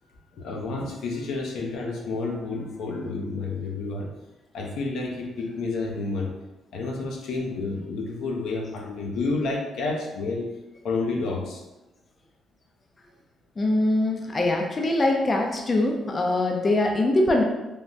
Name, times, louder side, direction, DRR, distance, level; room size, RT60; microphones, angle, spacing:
voice 1, 0.3-4.1 4.5-6.3 6.7-10.5 10.8-11.6, left 3 dB, 80° left, -1 dB, 0.6 m, -30 dB
voice 2, 13.6-17.4, left 2 dB, 30° left, 1 dB, 0.4 m, -23 dB
3.3 x 2.1 x 2.6 m, 1.0 s
cardioid pair, 90°, 0 cm